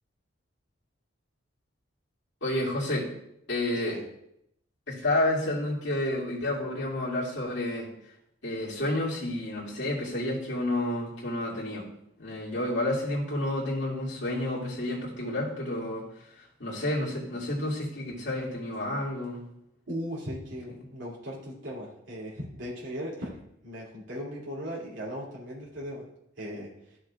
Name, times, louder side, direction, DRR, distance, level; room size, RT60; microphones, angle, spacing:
voice 1, 2.4-3.1 3.5-4.0 4.9-8.1 8.4-11.9 12.2-16.0 16.4-19.4 20.7-20.8, left 1 dB, 65° left, -5 dB, 2.4 m, -30 dB
voice 2, 19.9-26.0 26.4-27.0, equal, 75° right, -6 dB, 2.8 m, -38 dB
13.0 x 6.2 x 2.4 m, 0.78 s
head